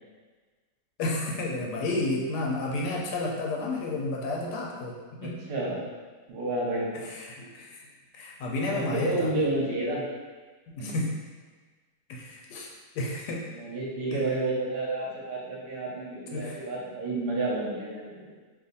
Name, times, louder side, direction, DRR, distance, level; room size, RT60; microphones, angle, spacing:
voice 1, 1.0-5.0 5.2-5.3 7.1-7.8 8.1-9.3 10.7-11.1 12.1-12.7 13.0-13.4 14.1-14.2 16.3-16.6, left 2 dB, 80° left, -2 dB, 1.2 m, -31 dB
voice 2, 5.2-5.8 6.3-7.0 8.6-10.0 10.8-11.0 13.5-18.3, right 2 dB, 50° right, -4 dB, 0.7 m, -30 dB
2.7 x 2.4 x 3.9 m, 1.4 s
omnidirectional pair, 1.8 m